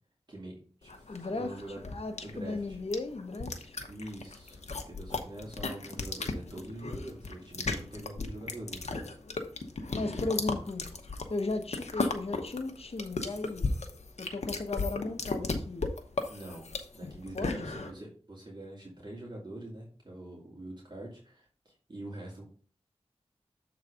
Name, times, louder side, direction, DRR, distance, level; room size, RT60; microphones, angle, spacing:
voice 1, 0.3-1.8 2.2-2.8 3.9-9.1 16.3-16.7 16.9-22.4, right 1 dB, 40° right, 2.5 m, -44 dB
sound 1, 0.9-17.9, left 3 dB, 90° left, 0.9 m, -36 dB
voice 2, 1.1-1.5 1.8-3.8 9.9-10.9 11.3-13.7 14.2-15.9 17.0-17.7, left 3 dB, 65° left, 1.1 m, -35 dB
7.4 x 4.0 x 5.0 m
wide cardioid pair, 60°, 11 cm